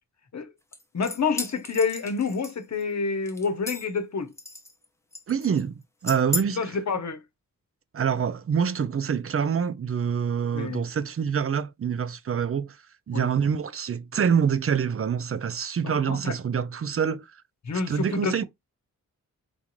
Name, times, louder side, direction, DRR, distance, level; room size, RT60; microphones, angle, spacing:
sound 1, 0.7-2.8 3.3-4.0 4.4-4.8 5.1-5.6 6.1-6.4, left 2 dB, 10° left, 0.7 m, -35 dB
voice 1, 0.9-4.3 6.5-7.2 10.5-10.8 13.1-13.3 15.8-16.3 17.6-18.4, left 4 dB, 55° left, 0.9 m, -28 dB
voice 2, 5.3-6.6 7.9-12.8 13.1-17.3 17.9-18.4, right 7 dB, 40° right, 0.5 m, -26 dB
3.7 x 2.4 x 3.1 m
cardioid pair, 70°, 34 cm